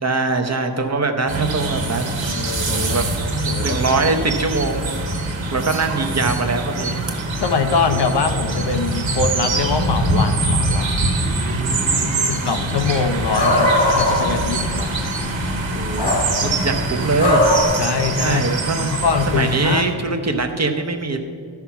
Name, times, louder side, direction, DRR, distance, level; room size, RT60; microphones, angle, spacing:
voice 1, 0.0-2.1 2.7-3.1 3.5-5.0 5.4-7.1 11.9-12.6 15.7-16.2 16.4-17.4 18.2-18.9 19.3-21.2, right 3 dB, 35° right, 6 dB, 0.8 m, -22 dB
sound 1, 1.3-19.8, right 2 dB, 75° right, 1.4 m, -23 dB
voice 2, 2.2-3.2 3.5-4.0 7.4-11.2 12.3-15.0 17.8-19.9, left 5 dB, 60° left, 8 dB, 0.8 m, -23 dB
sound 2, 12.6-17.6, left 2 dB, 75° left, 2.5 m, -21 dB
12.5 x 5.8 x 5.8 m, 2.2 s
wide cardioid pair, 125°, 45 cm